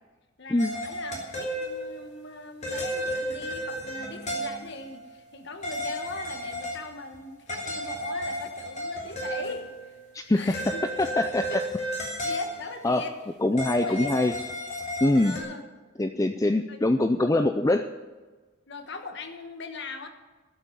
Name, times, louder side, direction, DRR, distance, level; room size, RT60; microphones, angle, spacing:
voice 1, 0.4-10.0 10.3-10.8 11.5-11.6 12.2-13.1 13.6-14.1 15.2-15.7 16.5-16.8 18.7-20.1, left 3 dB, 55° left, 7 dB, 1.4 m, -40 dB
sound 1, 0.6-2.1 2.6-4.8 5.6-6.8 7.1-7.2 7.5-9.9 10.5-12.9 13.6-15.4, equal, 35° left, 2.9 m, -33 dB
voice 2, 10.1-11.6 12.8-13.0 13.4-14.3 15.0-15.4 16.0-17.9, left 2 dB, 15° left, 8 dB, 0.4 m, -24 dB
12.5 x 8.2 x 9.2 m, 1.3 s
head